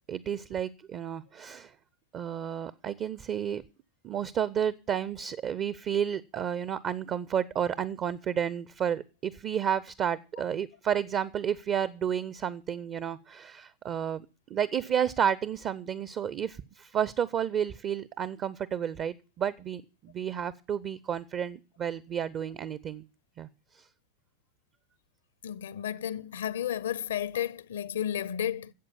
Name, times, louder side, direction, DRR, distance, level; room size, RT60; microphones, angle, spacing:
voice 1, 0.1-1.7 2.1-3.6 4.0-14.2 14.5-23.0 23.4-23.5, right 8 dB, 30° right, 0.6 m, -31 dB
voice 2, 25.4-28.7, left 10 dB, 65° left, 0.6 m, -32 dB
12.0 x 8.1 x 7.0 m
figure-of-eight pair, 90°, 0 cm